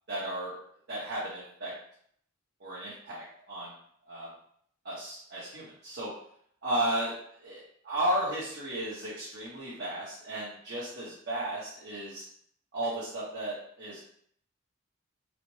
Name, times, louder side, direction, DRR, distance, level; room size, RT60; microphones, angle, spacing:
voice 1, 0.1-0.5 0.9-1.7 2.6-3.7 4.1-4.3 4.8-6.1 6.6-7.2 7.4-12.2 12.7-14.0, right 1 dB, 55° right, -8 dB, 0.9 m, -34 dB
4.0 x 2.1 x 3.1 m, 0.65 s
head